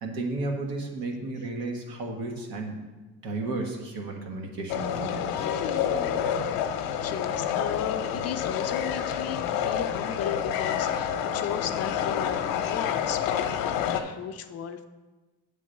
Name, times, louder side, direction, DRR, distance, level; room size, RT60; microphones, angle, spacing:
voice 1, 0.0-2.8 3.2-5.5, right 2 dB, 80° right, 2 dB, 1.5 m, -33 dB
sound 1, 4.7-14.0, left 8 dB, 75° left, 0.8 m, -28 dB
voice 2, 7.0-14.8, left 9 dB, 45° left, 8 dB, 0.5 m, -35 dB
8.3 x 3.8 x 6.4 m, 1.2 s
cardioid pair, 130°, 36 cm